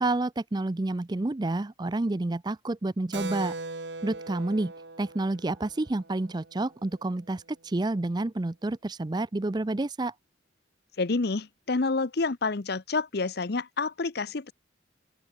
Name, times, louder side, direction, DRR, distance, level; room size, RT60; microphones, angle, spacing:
voice 1, 0.0-3.5 4.0-4.7 5.0-10.1, right 2 dB, 20° right, 0.5 m, -29 dB
Keyboard (musical), 3.1-7.2, right 3 dB, 65° right, 2.0 m, -40 dB
voice 2, 11.0-14.5, left 3 dB, 55° left, 0.8 m, -28 dB
open air
head